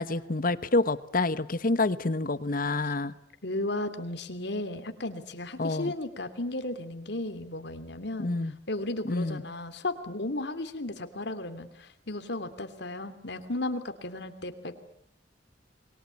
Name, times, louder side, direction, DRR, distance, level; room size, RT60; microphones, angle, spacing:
voice 1, 0.0-3.1 5.6-5.9 8.2-8.5 9.0-9.4, left 2 dB, 50° left, 15 dB, 1.1 m, -27 dB
voice 2, 3.4-8.4 8.7-14.8, left 2 dB, 65° left, 10 dB, 2.9 m, -35 dB
29.0 x 22.5 x 8.3 m, 0.72 s
head